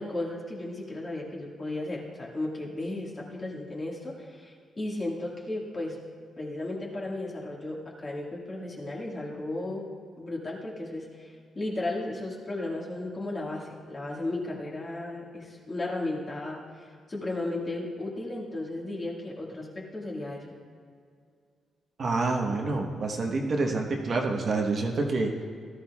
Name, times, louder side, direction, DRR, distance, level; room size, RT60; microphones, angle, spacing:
voice 1, 0.0-6.0 6.4-9.9 10.2-20.6, left 2 dB, 25° left, -3 dB, 1.9 m, -35 dB
voice 2, 22.0-25.4, right 3 dB, 40° right, 1 dB, 1.2 m, -27 dB
17.5 x 13.0 x 2.4 m, 2.2 s
cardioid pair, 155°, 0 cm